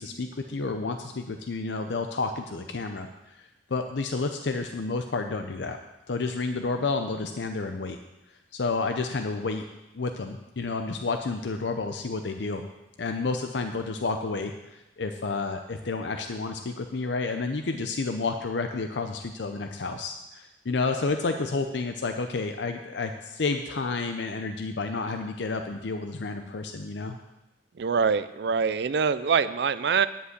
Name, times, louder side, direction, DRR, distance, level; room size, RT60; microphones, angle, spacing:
voice 1, 0.0-5.8 6.1-8.0 8.5-9.7 9.9-12.6 13.0-27.2, left 3 dB, 75° left, 6 dB, 0.6 m, -30 dB
voice 2, 27.8-30.1, right 6 dB, 65° right, 14 dB, 0.4 m, -24 dB
10.0 x 5.5 x 8.0 m, 1.0 s
head